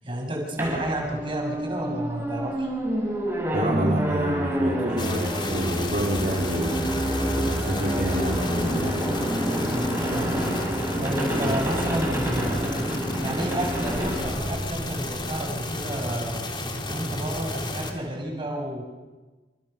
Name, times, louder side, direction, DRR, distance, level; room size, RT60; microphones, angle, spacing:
voice 1, 0.0-2.7 9.7-10.6 11.0-12.9 13.2-16.4 16.8-18.8, right 1 dB, 30° right, 0 dB, 7.3 m, -31 dB
sound 1, 0.6-15.3, equal, 15° right, 7.6 m, -28 dB
voice 2, 3.5-6.9 7.4-9.0 11.5-11.6, right 1 dB, 50° right, -2 dB, 3.5 m, -29 dB
sound 2, 5.0-17.9, left 1 dB, 25° left, 3.6 m, -32 dB
28.0 x 28.0 x 7.1 m, 1.3 s
head